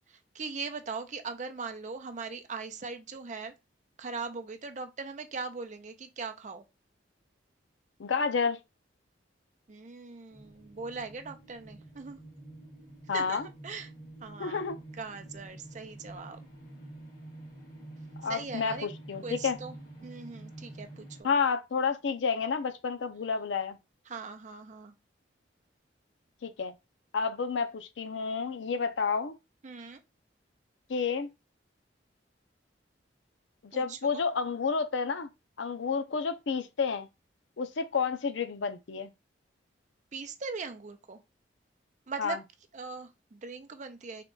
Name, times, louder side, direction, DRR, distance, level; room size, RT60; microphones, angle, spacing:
voice 1, 0.1-3.5 4.0-6.6 9.7-12.2 13.1-13.9 14.2-14.6 15.0-16.4 18.2-18.9 19.2-19.8 20.0-21.3 24.1-24.9 29.6-30.0 33.7-34.2 40.1-41.2 42.1-42.4 42.7-44.2, right 4 dB, 40° right, 0.5 m, -40 dB
voice 2, 8.0-8.6 13.1-13.4 14.4-14.8 18.2-19.6 21.2-23.8 26.4-26.7 27.1-29.3 30.9-31.3 33.6-35.3 35.6-37.1 37.6-39.1 42.2-42.4, left 5 dB, 75° left, 0.5 m, -30 dB
sound 1, 10.3-21.2, right 1 dB, 50° left, 2.0 m, -48 dB
3.6 x 2.3 x 3.7 m
head